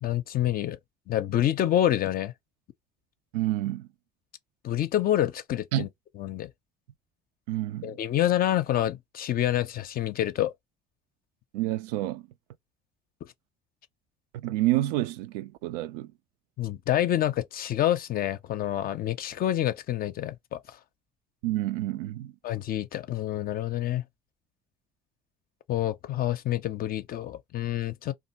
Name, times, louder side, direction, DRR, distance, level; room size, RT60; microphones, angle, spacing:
voice 1, 0.0-0.8 1.1-2.3 4.6-5.9 6.2-6.5 7.8-10.5 16.6-20.6 22.4-24.0 25.7-28.1, left 12 dB, 45° left, 0.6 m, -27 dB
voice 2, 3.3-3.9 5.7-5.9 7.5-8.0 11.5-12.3 14.3-16.1 21.4-22.3, right 15 dB, 65° right, 0.4 m, -28 dB
2.7 x 2.5 x 4.2 m
figure-of-eight pair, 55°, 21 cm